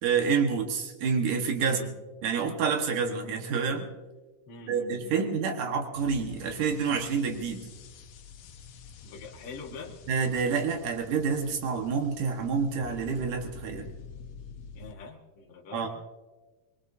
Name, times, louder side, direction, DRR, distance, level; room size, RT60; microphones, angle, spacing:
voice 1, 0.0-1.9 2.2-3.9 4.7-7.7 10.1-13.9 15.7-15.9, right 5 dB, 85° right, 3 dB, 3.0 m, -28 dB
voice 2, 1.6-2.0 4.5-5.2 9.0-10.0 14.7-15.9, left 3 dB, 55° left, -3 dB, 2.1 m, -44 dB
sound 1, 6.0-14.9, left 6 dB, 70° left, 1.4 m, -47 dB
25.0 x 21.0 x 2.7 m, 1.2 s
omnidirectional pair, 3.5 m